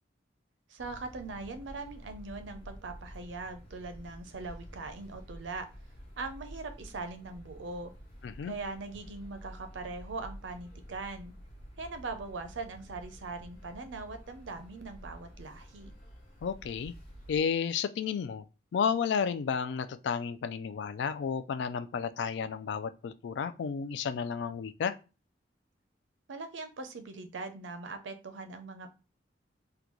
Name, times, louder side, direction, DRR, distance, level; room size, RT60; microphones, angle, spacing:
voice 1, 0.7-5.7 6.2-7.9 8.4-11.3 11.8-15.9 26.3-28.9, right 3 dB, 85° right, 0.5 m, -41 dB
sound 1, 0.8-17.4, equal, 35° left, 1.0 m, -50 dB
voice 2, 8.2-8.5 16.4-16.9 17.3-18.5 18.7-25.0, left 6 dB, 70° left, 0.3 m, -32 dB
3.7 x 2.2 x 2.9 m
head